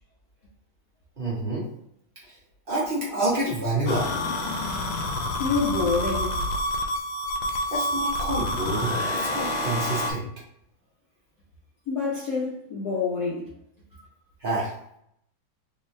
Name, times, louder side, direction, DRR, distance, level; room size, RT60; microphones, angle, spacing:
voice 1, 1.2-1.6 2.7-4.1 7.7-10.3 14.4-14.7, right 1 dB, 60° right, 0.5 m, -27 dB
sound 1, 3.9-10.1, left 1 dB, 90° left, 1.5 m, -28 dB
voice 2, 5.4-6.4 11.9-13.5, left 4 dB, 60° left, 1.1 m, -27 dB
3.5 x 2.7 x 3.1 m
omnidirectional pair, 2.3 m